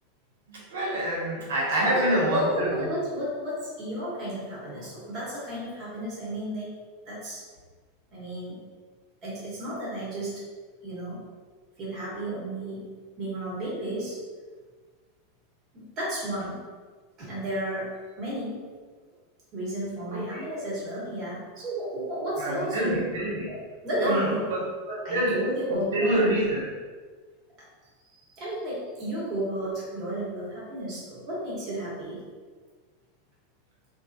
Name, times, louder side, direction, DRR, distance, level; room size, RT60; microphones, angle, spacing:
voice 1, 0.5-2.9 20.1-20.4 22.4-23.5 24.0-25.4 25.7-26.6, right 1 dB, 75° right, -5 dB, 1.0 m, -27 dB
voice 2, 1.7-6.7 7.0-7.4 8.1-8.6 9.2-10.4 10.8-11.2 11.8-12.9 13.2-14.2 15.7-16.6 17.2-17.9 18.2-18.6 19.5-23.1 23.5-23.6 23.8-24.5 25.0-26.4 28.4-32.2, right 1 dB, 40° right, -7 dB, 1.4 m, -32 dB
3.3 x 2.7 x 2.5 m, 1.5 s
hypercardioid pair, 90°, 0 cm